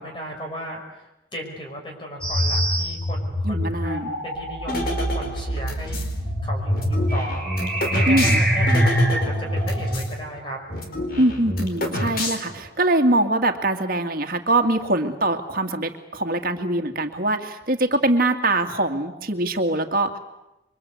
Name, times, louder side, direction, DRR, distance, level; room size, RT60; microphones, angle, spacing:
voice 1, 0.0-6.0 6.4-11.2, equal, 30° left, 1 dB, 5.8 m, -35 dB
sound 1, 2.2-10.0, equal, 5° left, 7.4 m, -24 dB
voice 2, 3.4-4.2 4.7-5.0 8.1-8.4 11.2-20.2, right 1 dB, 55° right, 5 dB, 2.1 m, -23 dB
sound 2, 4.7-6.1 6.7-10.1 10.4-10.5 10.7-12.7, left 1 dB, 55° left, 4.6 m, -29 dB
28.0 x 24.0 x 8.3 m, 0.91 s
head